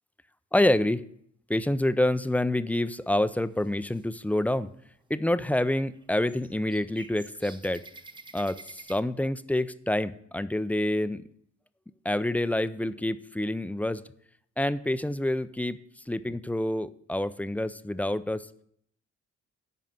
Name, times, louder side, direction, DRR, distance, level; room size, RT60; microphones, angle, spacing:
voice 1, 0.5-1.0 1.5-4.7 5.1-7.8 8.3-11.2 12.0-14.0 14.6-15.8 16.1-18.5, left 1 dB, 5° left, 14 dB, 0.4 m, -27 dB
sound 1, 3.0-4.0 4.5-4.9 5.3-9.0, right 3 dB, 15° right, 0.8 m, -50 dB
9.4 x 5.4 x 7.5 m, 0.68 s
cardioid pair, 90°, 30 cm